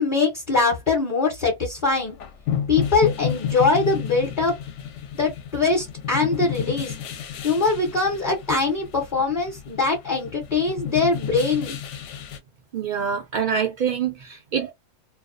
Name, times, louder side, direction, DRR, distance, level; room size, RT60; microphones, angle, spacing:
voice 1, 0.0-2.2 2.7-4.6 5.1-6.9 7.4-11.8, left 4 dB, 45° left, 0.8 m, -22 dB
sound 1, 1.9-12.4, left 8 dB, 70° left, 0.8 m, -31 dB
voice 2, 12.7-14.7, right 7 dB, 70° right, 0.4 m, -25 dB
2.3 x 2.2 x 2.4 m
omnidirectional pair, 1.3 m